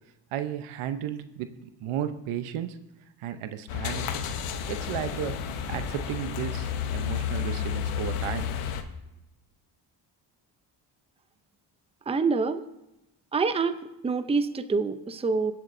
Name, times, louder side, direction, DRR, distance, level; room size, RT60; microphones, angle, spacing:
voice 1, 0.3-1.5 1.8-2.8 3.2-4.1 4.7-5.3 5.7-8.5, right 10 dB, 85° right, 10 dB, 0.8 m, -33 dB
sound 1, 3.7-8.8, left 8 dB, 85° left, 0.9 m, -31 dB
voice 2, 12.1-12.6 13.3-15.5, right 4 dB, 15° right, 11 dB, 0.5 m, -26 dB
21.5 x 7.5 x 2.6 m, 0.90 s
cardioid pair, 75°, 48 cm